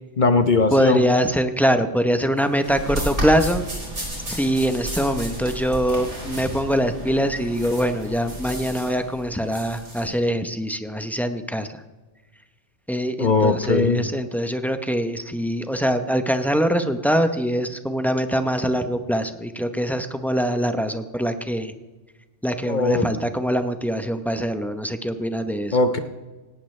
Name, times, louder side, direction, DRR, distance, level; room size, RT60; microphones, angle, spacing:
voice 1, 0.2-1.0 13.2-14.1 22.7-23.1 25.7-26.0, left 3 dB, 40° left, 8 dB, 1.0 m, -20 dB
voice 2, 0.7-3.6 4.3-11.8 12.9-21.7 22.4-25.8, equal, ahead, 7 dB, 0.7 m, -23 dB
sound 1, 2.4-10.0, right 1 dB, 65° right, 4.9 m, -32 dB
18.5 x 17.5 x 3.3 m, 1.2 s
omnidirectional pair, 1.3 m